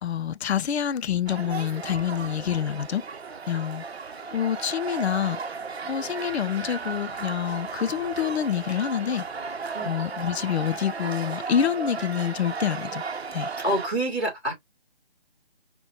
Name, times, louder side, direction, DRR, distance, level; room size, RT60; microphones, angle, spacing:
voice 1, 0.0-3.0 3.5-3.8 4.3-5.4 5.8-9.3 9.8-13.0 13.3-13.5, left 9 dB, 90° left, 0.5 m, -27 dB
sound 1, 1.3-13.9, right 5 dB, 80° right, 0.8 m, -35 dB
voice 2, 13.6-14.5, right 1 dB, ahead, 1.6 m, -26 dB
5.5 x 2.2 x 2.7 m
hypercardioid pair, 175°, 31 cm